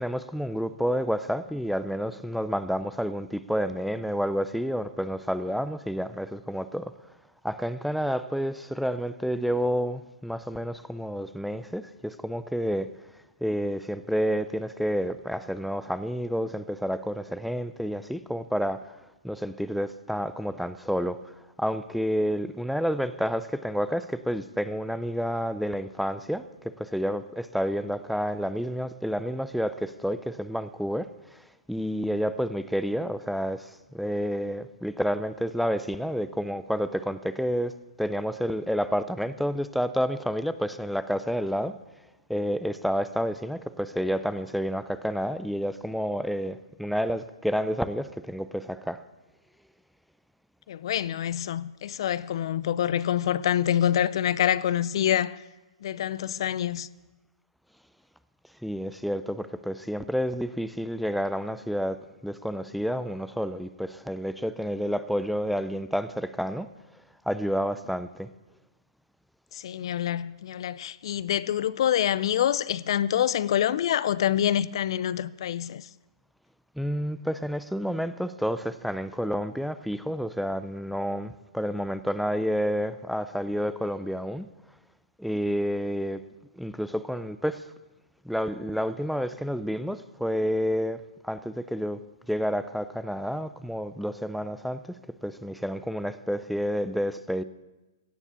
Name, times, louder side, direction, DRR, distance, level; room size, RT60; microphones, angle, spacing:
voice 1, 0.0-6.9 7.4-12.9 13.4-19.0 19.2-41.8 42.3-49.0 58.6-66.7 67.3-68.3 76.8-84.5 85.2-86.2 86.5-87.7 88.2-92.0 92.3-95.0 95.2-97.4, equal, ahead, 0.4 m, -29 dB
voice 2, 50.7-55.4 55.8-56.9 69.5-75.9, left 10 dB, 60° left, 0.5 m, -26 dB
16.5 x 7.2 x 8.2 m
hypercardioid pair, 130°, 3 cm